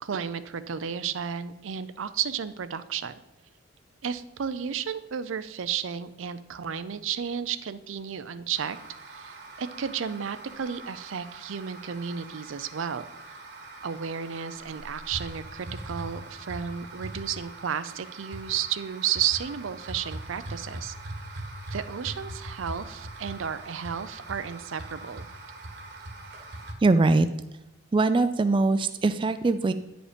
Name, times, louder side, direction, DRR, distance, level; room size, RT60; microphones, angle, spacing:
voice 1, 0.0-3.2 4.0-8.8 9.1-13.4 13.8-20.9 21.7-25.3, right 8 dB, 80° right, 13 dB, 0.5 m, -33 dB
sound 1, 8.6-26.7, right 2 dB, 60° right, 1.3 m, -42 dB
voice 2, 26.8-27.3 27.9-29.7, right 3 dB, 25° right, 10 dB, 0.3 m, -22 dB
9.7 x 5.2 x 5.1 m, 0.90 s
head